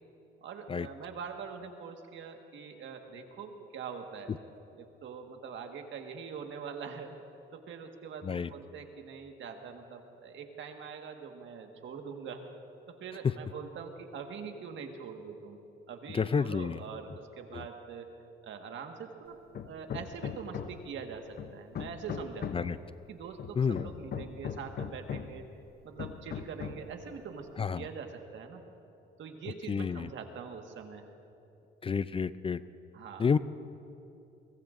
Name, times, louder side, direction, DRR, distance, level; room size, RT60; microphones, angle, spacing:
voice 1, 0.4-4.3 4.7-7.1 7.5-12.4 12.9-15.6 15.9-18.1 18.4-19.4 19.6-22.7 23.1-25.4 25.8-28.6 29.2-31.1 32.9-33.3, right 6 dB, 70° right, 4 dB, 1.6 m, -43 dB
voice 2, 16.1-16.8 17.5-17.6 22.5-22.8 23.6-23.8 27.6-27.9 29.7-30.1 31.8-32.6 33.2-33.4, left 6 dB, 30° left, 15 dB, 0.4 m, -29 dB
Hammer, 19.5-20.9 21.4-22.8 23.4-25.4 26.0-26.9, left 8 dB, 50° left, 0.7 m, -39 dB
24.0 x 21.5 x 2.6 m, 2.9 s
cardioid pair, 90°, 20 cm